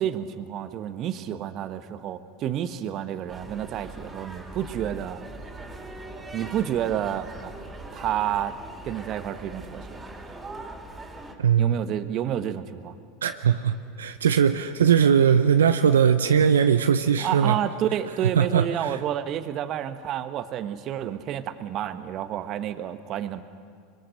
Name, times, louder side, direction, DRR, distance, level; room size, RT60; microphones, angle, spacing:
voice 1, 0.0-5.3 6.3-7.5 7.9-8.5 8.8-10.0 11.6-13.0 17.2-23.4, right 10 dB, 45° right, 11 dB, 1.2 m, -30 dB
sound 1, 3.3-11.3, right 2 dB, 20° right, 3.5 m, -41 dB
voice 2, 11.4-11.7 13.2-17.6 18.4-19.0, right 8 dB, 85° right, 9 dB, 0.7 m, -20 dB
24.0 x 22.5 x 6.5 m, 2.2 s
hypercardioid pair, 85°, 0 cm